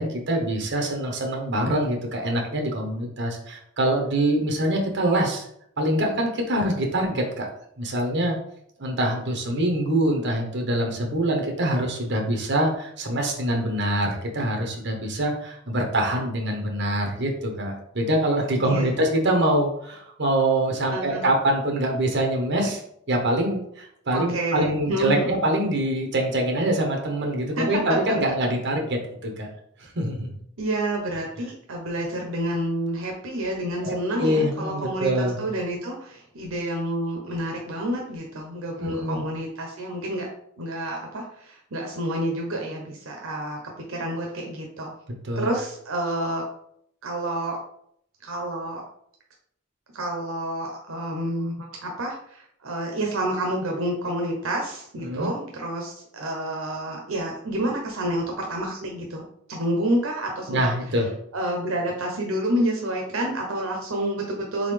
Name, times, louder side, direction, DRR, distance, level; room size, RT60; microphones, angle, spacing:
voice 1, 0.0-5.4 5.8-7.5 7.8-8.4 8.8-22.8 23.1-29.5 29.8-30.3 33.8-35.4 38.8-39.2 45.2-45.5 55.0-55.3 60.5-61.1, right 1 dB, 55° right, 2 dB, 1.0 m, -24 dB
voice 2, 20.9-21.2 24.1-25.4 27.5-27.8 28.1-28.2 30.6-40.3 40.6-43.6 43.9-44.9 45.4-46.4 47.0-47.6 48.2-48.8 49.9-59.2 59.5-60.6 61.3-64.7, right 1 dB, 80° right, 0 dB, 0.8 m, -29 dB
4.0 x 3.7 x 3.3 m, 0.69 s
head